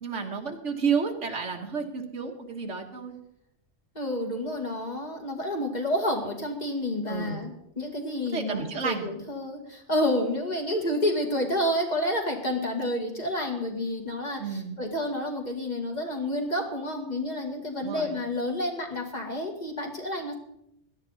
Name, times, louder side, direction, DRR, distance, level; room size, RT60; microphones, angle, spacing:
voice 1, 0.0-3.2 7.1-7.4 8.3-9.1 14.4-14.8 17.8-18.2, right 5 dB, 85° right, 4 dB, 1.8 m, -31 dB
voice 2, 4.0-20.3, left 1 dB, 35° left, 1 dB, 2.2 m, -29 dB
17.0 x 12.0 x 4.1 m, 0.77 s
omnidirectional pair, 1.2 m